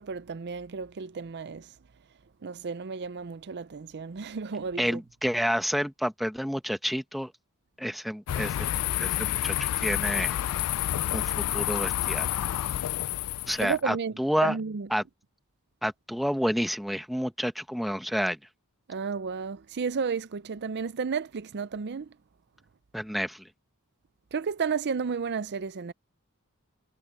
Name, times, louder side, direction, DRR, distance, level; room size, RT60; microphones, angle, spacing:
voice 1, 0.0-1.7 2.4-5.0 13.6-14.1 14.4-14.9 18.9-22.1 24.3-25.9, right 5 dB, 50° right, 0.5 m, -32 dB
voice 2, 4.8-7.3 7.8-8.7 9.0-10.4 11.1-12.3 13.5-14.6 14.9-15.0 15.8-18.4 22.9-23.5, equal, ahead, 1.1 m, -29 dB
sound 1, 8.3-13.8, left 12 dB, 85° left, 0.4 m, -29 dB
head